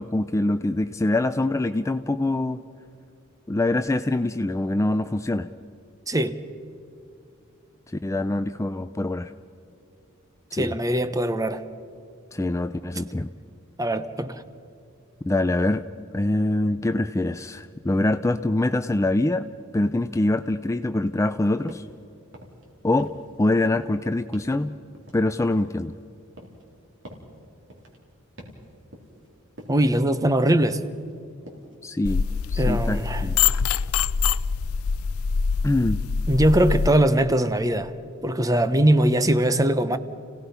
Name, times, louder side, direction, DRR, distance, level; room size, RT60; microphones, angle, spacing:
voice 1, 0.0-2.6 3.5-5.5 7.9-9.3 10.5-10.7 12.3-13.3 15.3-15.8 16.1-19.5 19.7-21.8 22.8-24.7 25.1-26.0 31.8-33.4 35.6-36.0, left 2 dB, 15° left, 0.4 m, -24 dB
voice 2, 6.1-6.4 10.5-11.6 13.8-14.4 29.7-30.8 32.6-33.2 36.3-37.9 38.2-40.0, right 1 dB, 15° right, 0.9 m, -21 dB
sound 1, 21.7-22.0 22.3-22.7 23.0-23.4 23.6-24.0 24.3-24.6 24.9-26.0 26.4-26.7 27.0-27.3 27.7-28.0 28.4-28.7 28.9-29.3 29.6-29.9 30.2-30.5 30.8-31.2 31.5-31.8, right 1 dB, 60° right, 3.6 m, -45 dB
sound 2, 32.1-36.9, left 6 dB, 90° left, 0.5 m, -24 dB
30.0 x 17.5 x 5.7 m
head